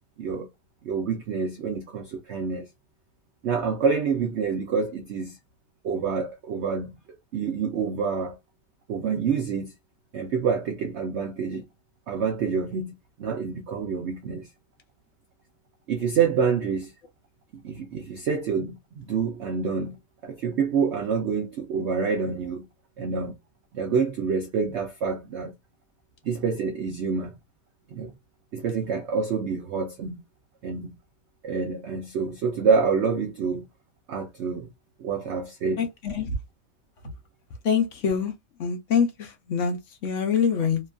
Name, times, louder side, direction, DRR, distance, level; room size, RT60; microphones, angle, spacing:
voice 1, 0.8-2.7 3.4-5.4 5.8-8.4 8.9-9.7 10.1-11.6 12.1-12.9 13.2-14.5 15.9-16.9 17.5-20.0 20.2-22.6 23.0-23.3 23.7-25.5 26.2-27.3 27.9-28.1 28.5-30.2 30.6-30.9 31.4-33.7 34.1-34.7 35.0-35.8, right 5 dB, 85° right, 0.6 m, -27 dB
voice 2, 35.8-36.3 37.6-38.3 38.6-40.8, left 6 dB, 60° left, 0.8 m, -25 dB
2.9 x 2.4 x 2.2 m
omnidirectional pair, 1.8 m